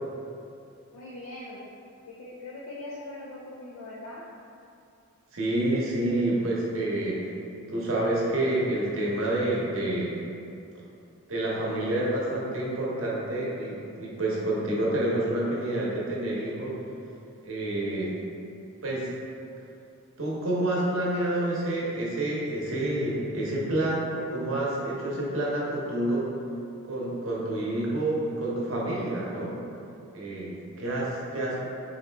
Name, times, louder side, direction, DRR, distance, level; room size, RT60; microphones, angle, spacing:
voice 1, 0.9-1.6 2.1-4.3, left 2 dB, 80° left, -7 dB, 0.5 m, -41 dB
voice 2, 5.3-7.2 7.7-10.2 11.3-16.7 17.4-18.2 18.8-19.1 20.2-26.2 26.8-29.6 30.1-31.7, right 1 dB, 60° right, -5 dB, 0.8 m, -28 dB
4.1 x 2.6 x 3.3 m, 2.7 s
head